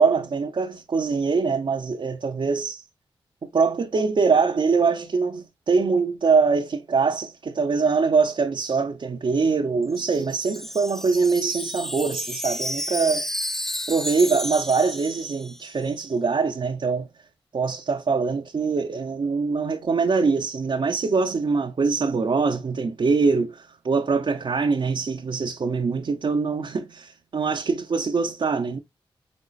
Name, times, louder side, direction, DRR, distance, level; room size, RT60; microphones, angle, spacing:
voice 1, 0.0-2.8 3.5-13.3 13.9-17.1 17.5-28.8, right 4 dB, 60° right, 0.7 m, -23 dB
Wind chime, 9.8-15.8, left 1 dB, 5° left, 0.5 m, -32 dB
5.2 x 3.6 x 2.4 m
cardioid pair, 40°, 10 cm